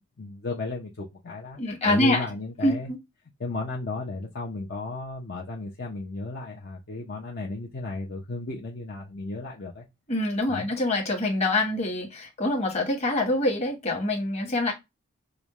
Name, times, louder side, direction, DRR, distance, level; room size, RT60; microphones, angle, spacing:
voice 1, 0.2-2.9 3.4-9.9 10.5-10.7, left 2 dB, 55° left, 0.6 m, -34 dB
voice 2, 1.6-2.2 2.6-3.0 10.1-14.7, left 1 dB, 35° left, 1.2 m, -25 dB
5.0 x 2.2 x 3.0 m
head